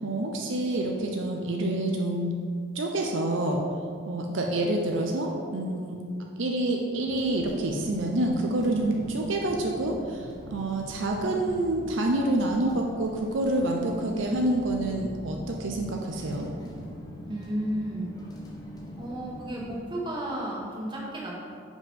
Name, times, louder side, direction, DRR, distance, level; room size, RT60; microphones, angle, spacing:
voice 1, 0.0-2.3 2.7-3.6 4.1-6.0 6.4-16.5, right 1 dB, 70° right, 1 dB, 0.6 m, -27 dB
sound 1, 7.1-19.8, equal, 20° left, 0.8 m, -43 dB
voice 2, 17.3-18.1 19.0-21.3, right 1 dB, 25° right, -4 dB, 1.2 m, -33 dB
5.3 x 5.1 x 5.2 m, 2.2 s
head